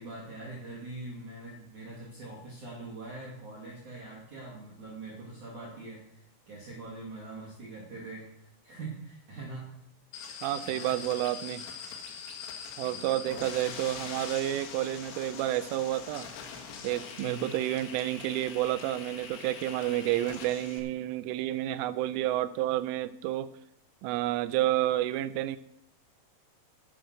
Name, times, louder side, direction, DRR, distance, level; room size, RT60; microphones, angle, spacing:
voice 1, 0.0-9.8 10.5-11.1 12.8-14.1 17.2-17.5, right 2 dB, 45° right, -5 dB, 3.3 m, -43 dB
sound 1, 10.1-20.8, left 6 dB, 90° left, 4.4 m, -43 dB
voice 2, 10.4-11.7 12.8-16.3 16.8-23.5 24.0-25.6, right 14 dB, 80° right, 14 dB, 3.1 m, -30 dB
11.0 x 8.4 x 6.4 m, 0.77 s
omnidirectional pair, 5.8 m